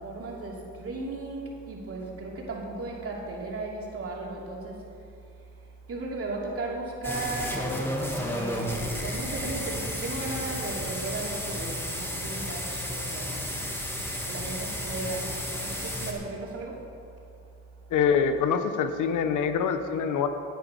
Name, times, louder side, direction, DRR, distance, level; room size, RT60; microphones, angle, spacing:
voice 1, 0.0-4.8 5.9-7.8 8.2-13.4 14.2-15.3 15.6-16.8, right 2 dB, 50° right, -3 dB, 3.0 m, -36 dB
sound 1, 7.0-16.1, equal, 10° left, 2.2 m, -32 dB
voice 2, 17.9-20.3, left 6 dB, 80° left, 9 dB, 1.0 m, -25 dB
14.5 x 9.4 x 5.2 m, 2.6 s
cardioid pair, 90°, 30 cm